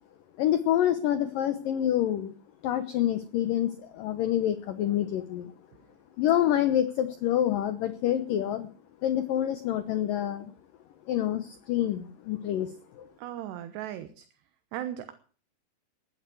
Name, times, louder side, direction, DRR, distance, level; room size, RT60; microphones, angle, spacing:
voice 1, 0.4-2.3 2.6-5.5 6.2-8.7 9.0-10.5 11.1-13.1, left 11 dB, 80° left, 10 dB, 2.0 m, -27 dB
voice 2, 13.2-14.3 14.7-15.1, right 11 dB, 70° right, 10 dB, 2.9 m, -37 dB
15.5 x 11.5 x 7.7 m, 0.42 s
omnidirectional pair, 5.5 m